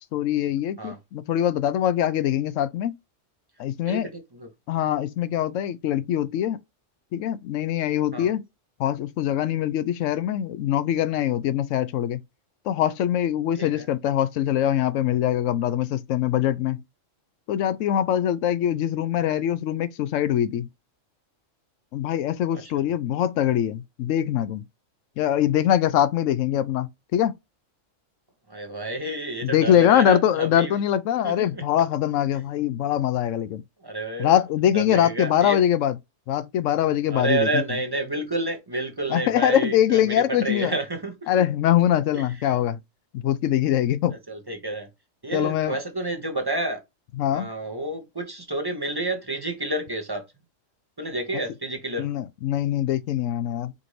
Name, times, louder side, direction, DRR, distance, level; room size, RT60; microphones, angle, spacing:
voice 1, 0.1-2.9 3.6-4.1 4.7-6.6 7.1-8.4 8.8-12.2 12.7-16.8 17.5-20.7 21.9-24.6 25.2-27.3 29.4-33.6 34.2-35.9 36.3-37.6 39.1-40.7 41.3-42.8 43.1-44.2 45.3-45.7 47.2-47.5 52.0-53.7, left 11 dB, 80° left, 0.9 m, -23 dB
voice 2, 3.9-4.5 8.1-8.3 13.6-13.9 28.5-30.8 31.2-31.6 33.8-34.4 34.7-35.6 37.1-41.4 42.1-42.5 44.3-44.9 45.2-46.8 47.3-50.2 51.0-52.1, right 2 dB, 25° right, 0.7 m, -29 dB
5.1 x 2.6 x 3.1 m
omnidirectional pair, 1.3 m